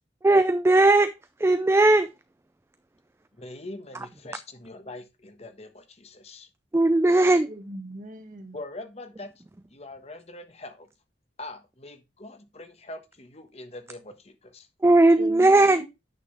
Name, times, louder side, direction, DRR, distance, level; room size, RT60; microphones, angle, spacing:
voice 1, 0.2-1.1 1.4-2.1 6.7-7.5 14.8-15.8, right 2 dB, 15° right, 0.3 m, -18 dB
voice 2, 3.4-6.5 8.5-9.3 9.7-10.9 11.4-14.7, left 2 dB, 35° left, 1.2 m, -42 dB
voice 3, 7.5-8.6 15.2-15.9, equal, 45° right, 1.4 m, -40 dB
9.2 x 6.1 x 3.2 m
head